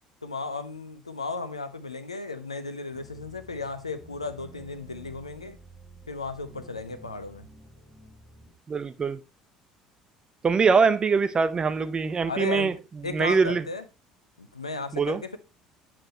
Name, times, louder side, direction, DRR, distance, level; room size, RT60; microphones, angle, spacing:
voice 1, 0.2-5.6 6.1-7.5 12.3-12.8 13.0-13.8 14.4-15.4, left 3 dB, 85° left, 0.6 m, -35 dB
sound 1, 2.9-8.5, right 2 dB, 10° right, 3.0 m, -50 dB
voice 2, 8.7-9.2 10.4-12.7 13.1-13.6 14.9-15.2, right 5 dB, 25° right, 0.7 m, -23 dB
7.5 x 7.3 x 2.9 m
figure-of-eight pair, 60°, 3 cm